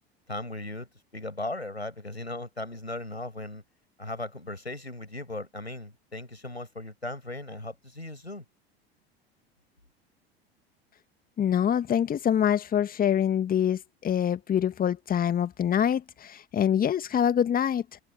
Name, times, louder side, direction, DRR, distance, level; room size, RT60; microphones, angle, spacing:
voice 1, 0.3-3.6 4.0-8.4, left 2 dB, 90° left, 7.1 m, -37 dB
voice 2, 11.4-17.9, left 9 dB, 30° left, 2.1 m, -25 dB
open air
figure-of-eight pair, 75°, 31 cm